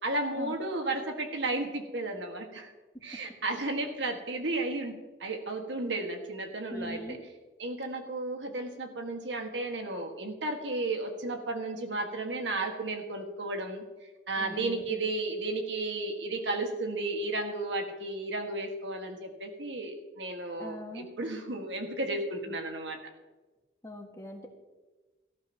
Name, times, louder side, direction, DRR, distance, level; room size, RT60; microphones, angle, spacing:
voice 1, 0.0-2.7 3.0-7.2 7.6-13.8 14.3-23.0, right 2 dB, 85° right, 4 dB, 1.9 m, -33 dB
voice 2, 6.7-7.2 14.4-15.0 20.6-21.1 22.5-22.6 23.8-24.5, equal, 20° left, 1 dB, 1.9 m, -41 dB
18.5 x 14.0 x 3.0 m, 1.2 s
head